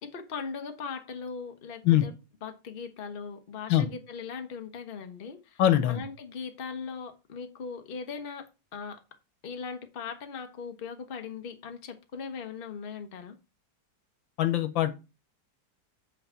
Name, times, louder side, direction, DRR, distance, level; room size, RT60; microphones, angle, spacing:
voice 1, 0.0-2.1 2.4-9.0 9.4-13.4, left 5 dB, 35° left, 1.0 m, -39 dB
voice 2, 5.6-6.0 14.4-15.0, left 12 dB, 85° left, 1.6 m, -22 dB
8.3 x 4.0 x 5.7 m
omnidirectional pair, 2.1 m